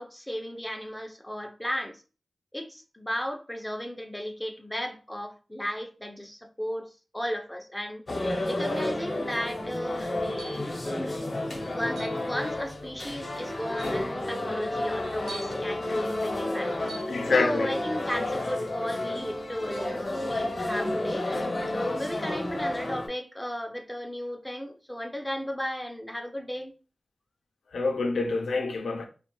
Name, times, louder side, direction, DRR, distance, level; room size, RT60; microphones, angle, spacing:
voice 1, 0.0-2.0 2.5-8.0 8.5-10.7 11.7-16.7 17.3-26.7, equal, 10° left, 0.5 m, -35 dB
sound 1, 8.1-23.1, left 1 dB, 55° left, 0.8 m, -31 dB
sound 2, 10.4-10.7 12.0-12.2 13.2-13.3 13.8-14.1 15.3-15.6 16.9-17.1, right 3 dB, 80° right, 0.4 m, -43 dB
voice 2, 17.1-17.8 27.7-29.1, left 3 dB, 90° left, 0.4 m, -27 dB
2.4 x 2.1 x 3.0 m
cardioid pair, 45°, 0 cm